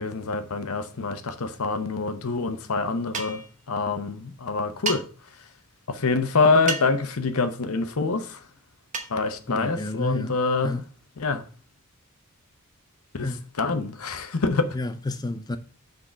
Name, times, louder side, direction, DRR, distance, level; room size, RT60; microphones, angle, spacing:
voice 1, 0.0-5.1 5.3-5.5 5.9-8.4 9.1-10.8 11.2-11.4 13.1-14.8, left 3 dB, 75° left, 0.8 m, -26 dB
sound 1, 3.1-3.5 4.9-5.0 6.7-7.0 8.9-9.2, right 4 dB, 35° right, 0.9 m, -30 dB
voice 2, 9.5-10.3 10.6-10.8 13.2-13.4 14.7-15.6, left 2 dB, 20° left, 0.5 m, -30 dB
6.2 x 3.8 x 6.1 m
head